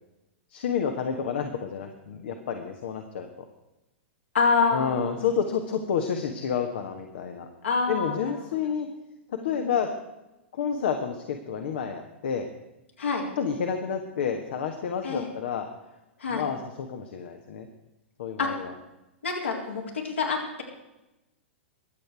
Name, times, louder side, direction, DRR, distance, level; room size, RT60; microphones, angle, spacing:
voice 1, 0.5-3.3 4.7-7.5 7.9-8.9 9.4-9.9 10.5-12.5 13.4-15.7 16.3-17.7 18.2-18.7, left 7 dB, 60° left, 5 dB, 1.3 m, -29 dB
voice 2, 4.3-5.2 7.6-8.2 8.5-8.7 9.4-9.7 13.0-13.2 15.0-15.3 16.2-16.5 18.4-18.5 19.2-20.6, left 4 dB, 75° left, -1 dB, 3.8 m, -27 dB
22.5 x 8.1 x 4.7 m, 0.96 s
figure-of-eight pair, 105°, 7 cm